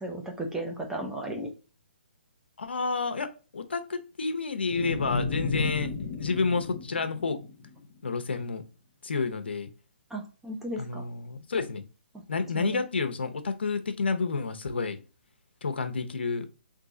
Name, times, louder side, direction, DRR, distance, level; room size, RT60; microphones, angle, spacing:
voice 1, 0.0-1.5 10.1-11.0 12.5-12.8, right 1 dB, 5° right, 1 dB, 0.6 m, -35 dB
voice 2, 2.6-7.4 8.0-8.6 9.0-9.7 10.8-11.8 12.3-15.0 15.6-16.5, left 4 dB, 80° left, 9 dB, 0.8 m, -30 dB
sound 1, 4.7-8.0, left 3 dB, 30° left, 0.8 m, -33 dB
3.8 x 2.8 x 3.7 m, 0.33 s
hypercardioid pair, 155°, 6 cm